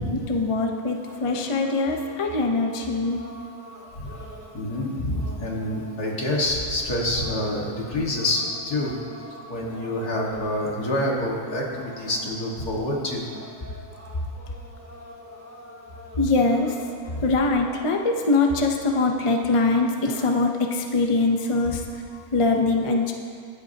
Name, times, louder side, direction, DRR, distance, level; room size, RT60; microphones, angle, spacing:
voice 1, 0.3-4.8 9.4-9.5 16.2-16.8 17.0-23.1, left 3 dB, 30° left, 2 dB, 0.6 m, -23 dB
sound 1, 1.0-20.5, equal, 10° right, 0.9 m, -46 dB
voice 2, 4.5-8.9 9.5-11.7 12.0-13.2 17.1-17.2 21.7-21.8, left 1 dB, 85° left, -3 dB, 2.4 m, -27 dB
24.0 x 8.1 x 2.9 m, 2.2 s
omnidirectional pair, 1.6 m